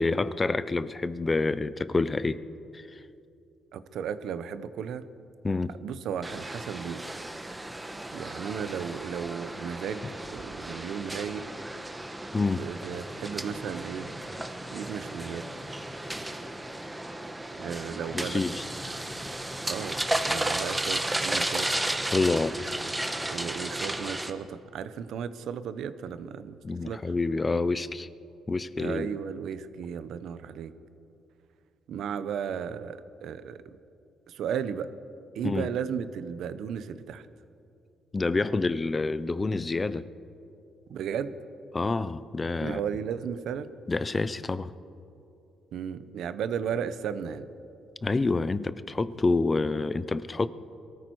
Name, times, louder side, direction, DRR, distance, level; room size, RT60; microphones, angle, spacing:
voice 1, 0.0-2.4 2.7-2.9 5.4-5.7 12.3-12.6 18.1-18.6 22.1-22.5 26.6-28.1 28.5-29.1 35.4-35.7 38.1-40.0 41.7-42.8 43.9-44.7 48.0-50.5, left 3 dB, 25° left, 15 dB, 0.6 m, -27 dB
voice 2, 3.7-5.1 5.8-7.0 8.1-11.5 12.6-14.1 14.7-15.5 17.6-18.4 19.7-20.0 20.3-21.7 23.3-27.0 28.8-30.7 31.9-33.6 34.3-34.9 35.3-37.3 40.9-41.3 42.6-43.7 45.7-47.5, right 8 dB, 75° right, 13 dB, 0.7 m, -34 dB
sound 1, 6.2-24.3, right 1 dB, 10° right, 1.1 m, -34 dB
22.0 x 14.0 x 4.7 m, 2.6 s
cardioid pair, 90°, 0 cm